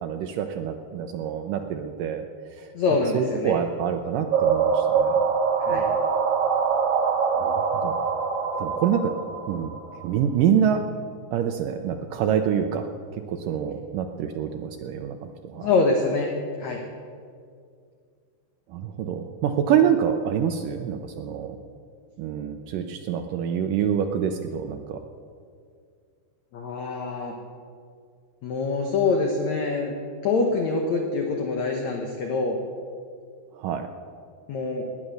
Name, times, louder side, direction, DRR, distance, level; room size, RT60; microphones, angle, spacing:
voice 1, 0.0-2.3 2.5-2.7 3.1-5.2 5.7-6.0 7.4-8.0 8.5-9.1 9.5-9.8 10.0-10.8 11.3-15.7 18.7-21.6 22.2-25.0 33.6-33.9, right 8 dB, 85° right, 5 dB, 1.9 m, -26 dB
voice 2, 2.7-3.5 5.6-5.9 15.6-16.3 16.6-16.8 26.5-27.4 28.4-29.9 30.2-32.6 34.5-34.8, left 3 dB, 70° left, 2 dB, 1.8 m, -25 dB
sound 1, 4.3-10.0, right 6 dB, 65° right, 3.2 m, -24 dB
18.5 x 10.5 x 6.6 m, 2.2 s
omnidirectional pair, 4.7 m